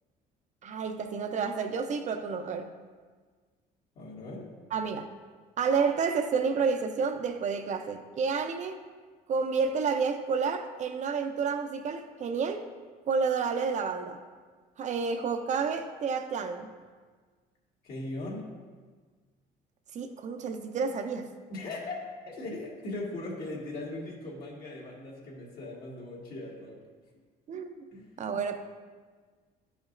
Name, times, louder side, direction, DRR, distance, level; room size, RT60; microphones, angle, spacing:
voice 1, 0.6-2.7 4.7-5.1 5.6-8.8 9.3-12.7 13.1-14.2 14.8-16.7 19.9-21.3 27.5-27.8 28.2-28.6, right 5 dB, 45° right, 7 dB, 0.7 m, -30 dB
voice 2, 4.0-4.5 17.8-18.5 21.5-22.0 22.2-26.8 27.9-28.1, left 2 dB, 65° left, -4 dB, 2.0 m, -39 dB
11.5 x 5.1 x 2.6 m, 1.5 s
cardioid pair, 110°, 17 cm